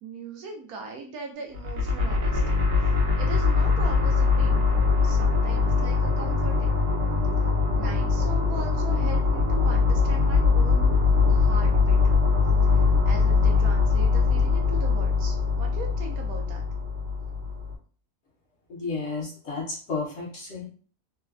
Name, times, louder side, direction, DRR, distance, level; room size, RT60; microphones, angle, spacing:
voice 1, 0.0-2.7 3.2-6.8 7.4-12.2 12.7-16.6, right 3 dB, 75° right, 2 dB, 1.1 m, -40 dB
sound 1, 1.5-17.7, left 4 dB, 55° right, 0.9 m, -22 dB
voice 2, 18.7-20.7, left 4 dB, 55° left, -4 dB, 0.9 m, -32 dB
3.1 x 2.1 x 2.3 m, 0.41 s
omnidirectional pair, 1.6 m